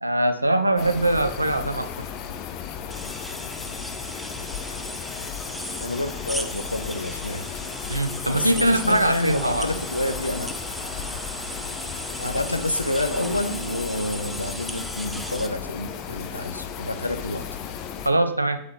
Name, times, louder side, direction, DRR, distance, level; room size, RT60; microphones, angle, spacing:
voice 1, 0.0-1.9 7.9-9.7 18.0-18.6, right 1 dB, 85° right, 11 dB, 0.5 m, -22 dB
sound 1, 0.8-18.1, left 8 dB, 40° left, 0.7 m, -35 dB
sound 2, 2.9-15.5, right 1 dB, 5° right, 0.6 m, -37 dB
voice 2, 5.8-7.5 8.3-10.5 12.2-17.5, left 1 dB, 85° left, 10 dB, 0.4 m, -28 dB
sound 3, 7.1-15.5, right 3 dB, 30° right, 1.4 m, -45 dB
8.5 x 3.8 x 4.4 m, 0.71 s
figure-of-eight pair, 90°, 0 cm